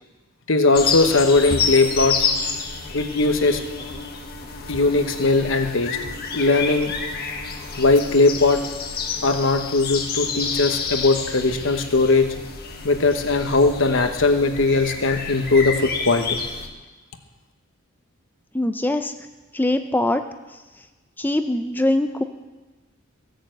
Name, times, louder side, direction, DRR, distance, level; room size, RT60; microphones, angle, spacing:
voice 1, 0.5-2.3 2.9-3.6 4.7-6.0 6.3-6.9 7.8-8.6 9.2-12.3 12.8-16.4, left 3 dB, 70° left, 7 dB, 1.2 m, -19 dB
sound 1, 0.7-16.7, left 5 dB, 50° left, 1.3 m, -29 dB
voice 2, 18.5-19.1 19.5-20.2 20.5-20.6 21.2-22.2, left 1 dB, 10° left, 8 dB, 0.5 m, -22 dB
16.0 x 6.8 x 7.8 m, 1.2 s
head